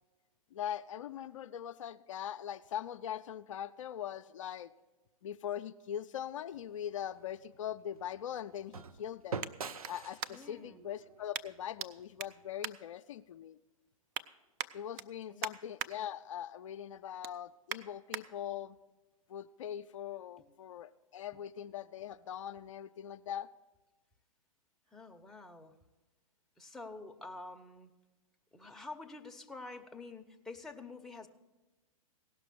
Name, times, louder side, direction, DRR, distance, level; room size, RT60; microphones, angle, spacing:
voice 1, 0.5-4.7 5.2-9.5 9.9-13.6 14.7-18.8 19.3-23.5, left 10 dB, 65° left, 9 dB, 0.5 m, -41 dB
sound 1, 6.5-12.7, right 5 dB, 85° right, 0.6 m, -47 dB
sound 2, 6.8-10.7 11.3-11.9 12.2-13.5 13.8-14.3 14.6-15.9 16.3-16.6 16.9-18.2 18.8-18.9, right 11 dB, 35° right, 0.5 m, -43 dB
voice 2, 10.3-10.8 15.3-15.5 20.4-20.5 24.9-25.8 26.6-27.9 28.5-31.3, left 3 dB, ahead, 3 dB, 0.7 m, -48 dB
17.0 x 6.1 x 6.8 m, 1.1 s
hypercardioid pair, 120°, 18 cm